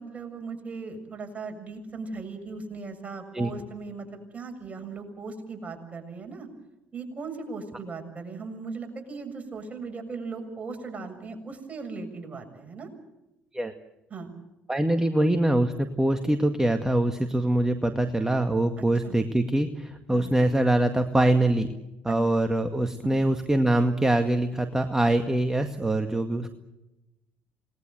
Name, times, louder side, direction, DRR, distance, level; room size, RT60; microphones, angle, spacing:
voice 1, 0.0-6.5 6.9-12.9 14.1-14.3 19.0-19.1 20.1-20.3 22.1-22.2, right 4 dB, 30° right, 5 dB, 7.0 m, -38 dB
voice 2, 14.7-21.7 22.0-26.5, right 1 dB, 10° right, 7 dB, 2.0 m, -24 dB
28.5 x 20.0 x 8.0 m, 0.95 s
figure-of-eight pair, 55°, 5 cm